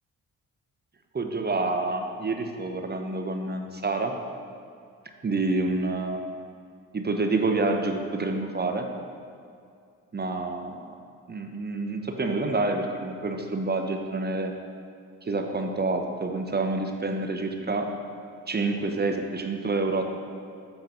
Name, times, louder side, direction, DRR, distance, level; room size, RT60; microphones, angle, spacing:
voice 1, 1.1-4.1 5.2-6.2 6.9-8.9 10.1-10.9 11.3-14.5 15.2-17.9 18.5-20.2, right 3 dB, 25° right, 4 dB, 0.7 m, -28 dB
6.8 x 4.0 x 4.1 m, 2.3 s
supercardioid pair, 50°, 38 cm